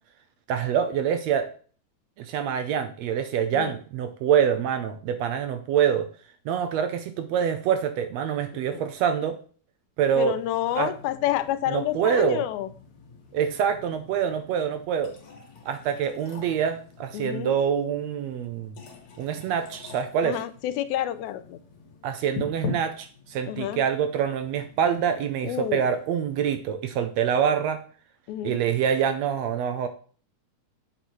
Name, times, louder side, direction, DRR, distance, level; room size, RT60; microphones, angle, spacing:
voice 1, 0.5-1.5 2.2-6.1 6.4-9.4 10.0-10.4 10.8-10.9 11.7-12.4 13.3-15.1 15.6-18.8 19.2-20.4 22.0-27.8 28.4-29.9, right 8 dB, 75° right, 1.7 m, -25 dB
voice 2, 10.2-12.7 17.1-17.5 20.2-21.6 23.5-23.8 25.4-25.8 28.3-28.6, left 12 dB, 85° left, 2.0 m, -29 dB
sound 1, 10.2-26.6, left 5 dB, 55° left, 2.0 m, -44 dB
7.9 x 4.3 x 4.6 m
omnidirectional pair, 3.4 m